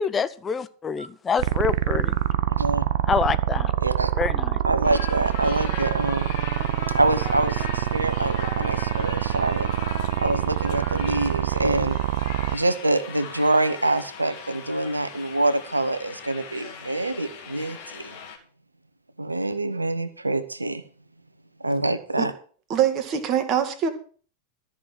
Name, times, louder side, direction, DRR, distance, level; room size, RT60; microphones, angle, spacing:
voice 1, 0.0-2.2 3.0-3.7 4.2-4.6, left 6 dB, 20° left, 13 dB, 0.8 m, -26 dB
sound 1, 1.4-12.6, right 13 dB, 55° right, 0.6 m, -25 dB
voice 2, 4.6-6.3 6.9-9.7 10.2-12.0 12.5-18.1 19.2-20.8 21.6-22.3, right 2 dB, 80° right, 12 dB, 1.1 m, -25 dB
sound 2, 4.8-18.4, left 6 dB, 50° left, 2.7 m, -39 dB
voice 3, 22.7-23.9, right 8 dB, 35° right, 7 dB, 2.0 m, -23 dB
13.5 x 6.3 x 7.5 m, 0.41 s
figure-of-eight pair, 90°, 0 cm